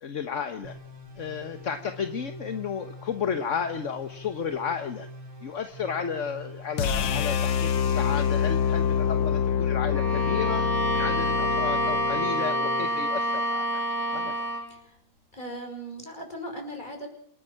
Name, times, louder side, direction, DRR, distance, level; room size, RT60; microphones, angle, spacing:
voice 1, 0.0-0.8 1.2-5.1 5.4-10.6 10.9-13.8 14.1-14.5, left 6 dB, 45° left, 8 dB, 1.3 m, -33 dB
sound 1, 0.6-7.9, left 1 dB, 70° right, 5.2 m, -45 dB
sound 2, 6.8-12.9, left 8 dB, 70° left, 1.9 m, -26 dB
Bowed string instrument, 9.9-14.7, equal, 30° right, 5.4 m, -28 dB
voice 2, 15.3-17.1, right 1 dB, 20° left, 4 dB, 6.3 m, -38 dB
27.5 x 11.0 x 8.7 m, 0.67 s
omnidirectional pair, 2.2 m